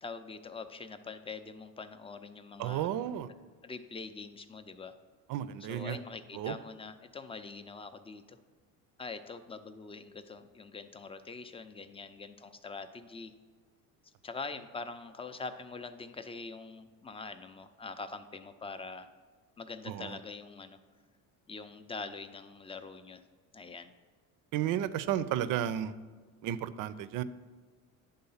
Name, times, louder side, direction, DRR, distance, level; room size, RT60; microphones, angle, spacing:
voice 1, 0.0-2.9 3.6-5.0 5.7-8.4 9.0-13.3 14.0-19.1 19.6-20.8 21.5-23.2 23.5-23.9, left 4 dB, 15° left, 10 dB, 0.5 m, -44 dB
voice 2, 2.6-3.3 5.3-6.0 6.3-6.5 19.9-20.2 24.5-25.9 26.4-27.2, right 11 dB, 55° right, 15 dB, 0.5 m, -33 dB
9.7 x 3.8 x 5.6 m, 1.5 s
supercardioid pair, 100°, 38 cm